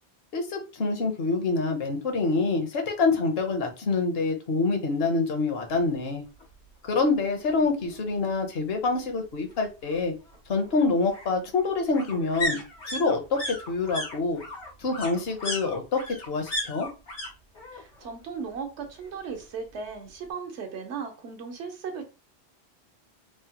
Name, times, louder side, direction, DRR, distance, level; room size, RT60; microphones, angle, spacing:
voice 1, 0.3-6.2 6.8-10.1 10.5-14.4 14.8-16.9, left 3 dB, 65° left, 0.9 m, -26 dB
sound 1, 6.4-6.5 6.9-7.0 7.2-8.2 9.5-17.3 17.5-18.1 18.4-19.4 19.7-19.8, left 1 dB, 85° left, 1.4 m, -36 dB
voice 2, 17.7-22.0, right 5 dB, 80° right, 1.0 m, -36 dB
3.2 x 2.1 x 2.8 m
omnidirectional pair, 1.1 m